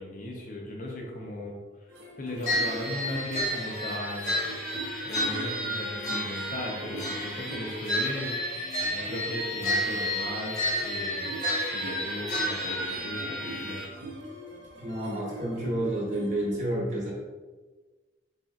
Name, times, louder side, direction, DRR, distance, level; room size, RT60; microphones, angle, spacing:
voice 1, 0.0-1.5 2.2-4.4 5.0-8.4 8.9-11.3 11.7-13.9, left 1 dB, 40° left, 0 dB, 0.5 m, -37 dB
sound 1, 1.9-16.6, right 1 dB, 65° right, 0.6 m, -44 dB
sound 2, 2.4-13.8, equal, 20° left, 1.0 m, -31 dB
voice 2, 14.8-17.1, right 1 dB, 35° right, -3 dB, 0.8 m, -30 dB
4.0 x 3.2 x 2.4 m, 1.3 s
head